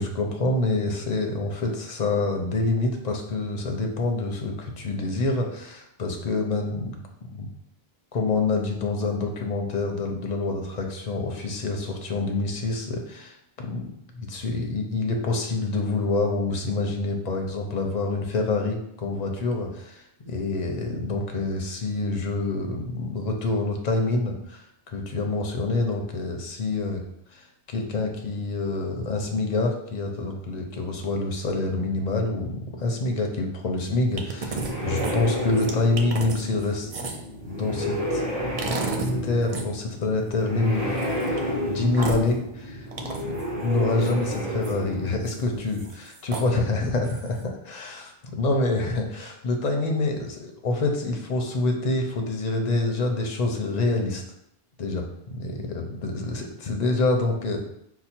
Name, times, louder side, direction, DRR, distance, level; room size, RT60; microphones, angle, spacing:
voice 1, 0.0-7.0 7.3-7.5 8.1-13.9 14.2-27.0 27.3-27.4 27.7-37.1 37.5-38.2 39.0-40.9 41.7-42.9 43.2-54.2 54.8-57.6, left 2 dB, 45° left, 3 dB, 0.7 m, -27 dB
sound 1, 34.1-45.9, equal, 70° right, 1.5 m, -31 dB
sound 2, 34.2-34.7 35.0-37.3 38.6-39.1 39.4-39.6 41.0-41.4 41.9-42.3 42.9-43.4 44.0-44.7 45.2-45.4 45.7-46.5 47.0-47.4, right 4 dB, 45° right, 0.5 m, -33 dB
5.5 x 2.1 x 4.4 m, 0.74 s
omnidirectional pair, 1.0 m